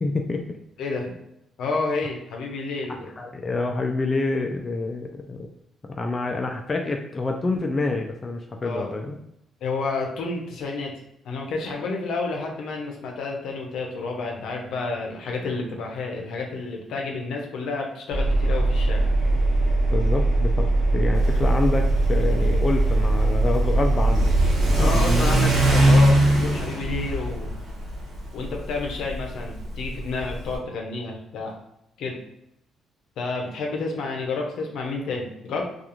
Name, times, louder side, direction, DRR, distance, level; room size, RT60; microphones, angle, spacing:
voice 1, 0.0-0.6 3.2-5.5 5.9-9.2 19.9-24.3 24.8-24.9, left 3 dB, 30° left, 3 dB, 0.3 m, -27 dB
voice 2, 0.8-1.1 1.6-3.1 8.6-8.9 9.6-10.9 11.2-19.0 24.8-27.5 28.3-31.6 32.0-32.2 33.2-35.7, left 3 dB, 75° left, 1 dB, 0.6 m, -30 dB
Engine, 18.1-25.4, right 2 dB, 90° right, 0.8 m, -21 dB
Car / Accelerating revving vroom, 21.1-30.6, right 1 dB, 65° right, 1.1 m, -23 dB
2.4 x 2.4 x 2.9 m, 0.82 s
cardioid pair, 90°, 0 cm